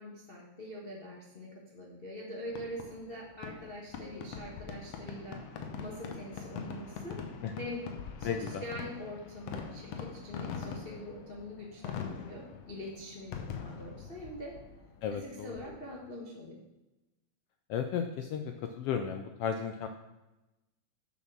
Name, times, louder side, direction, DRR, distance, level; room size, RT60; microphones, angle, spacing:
voice 1, 0.0-5.4 5.8-7.2 7.6-7.8 8.2-14.6 15.1-16.6, left 1 dB, 45° left, -4 dB, 0.7 m, -44 dB
Fireworks, 2.5-16.1, left 6 dB, 70° left, 1.9 m, -43 dB
voice 2, 8.2-8.6 15.0-15.5 17.7-19.9, left 7 dB, 85° left, 6 dB, 1.3 m, -34 dB
7.3 x 6.2 x 6.0 m, 1.0 s
omnidirectional pair, 3.3 m